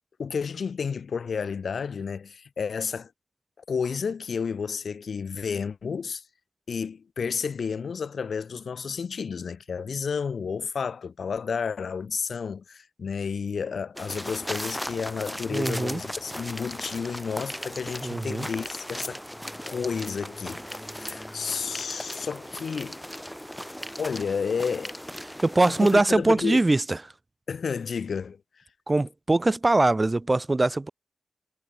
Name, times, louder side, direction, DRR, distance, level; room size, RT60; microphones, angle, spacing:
voice 1, 0.2-3.1 3.7-6.2 6.7-19.2 19.7-23.0 24.0-24.9 25.8-26.6 27.5-28.4, left 6 dB, 80° left, 1.3 m, -31 dB
sound 1, 14.0-26.0, equal, 5° left, 1.1 m, -37 dB
voice 2, 15.5-16.0 18.0-18.5 25.4-27.0 28.9-30.9, right 2 dB, 30° right, 2.0 m, -22 dB
cardioid pair, 50°, 0 cm